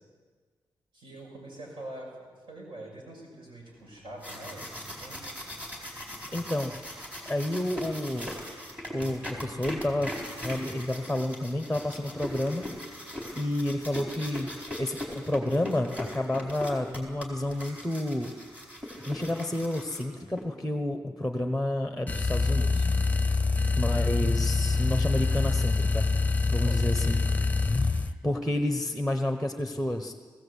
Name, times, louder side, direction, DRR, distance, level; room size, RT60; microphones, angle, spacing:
voice 1, 0.9-5.3 24.2-24.6 26.5-27.2, right 1 dB, 65° right, -2 dB, 6.0 m, -45 dB
sound 1, 4.0-20.4, equal, 15° right, 4.5 m, -40 dB
voice 2, 6.3-6.7 7.2-8.3 8.9-10.1 10.4-12.7 13.3-14.5 14.8-18.3 19.1-22.9 23.8-26.1 26.5-27.2 27.8-30.1, left 1 dB, ahead, 5 dB, 1.1 m, -30 dB
sound 2, 22.1-28.1, left 3 dB, 15° left, 0.7 m, -25 dB
19.0 x 16.5 x 8.3 m, 1.5 s
wide cardioid pair, 130°, 9 cm